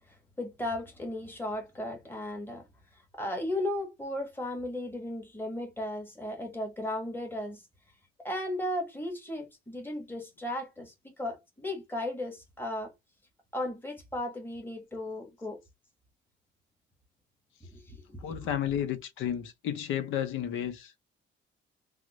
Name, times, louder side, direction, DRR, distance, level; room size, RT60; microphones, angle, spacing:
voice 1, 0.1-2.6 3.1-7.6 8.2-12.9 13.5-15.6 17.7-18.6, left 1 dB, 10° left, 1.4 m, -36 dB
voice 2, 18.2-21.0, left 10 dB, 85° left, 0.6 m, -32 dB
3.5 x 2.1 x 3.0 m
cardioid pair, 90°, 20 cm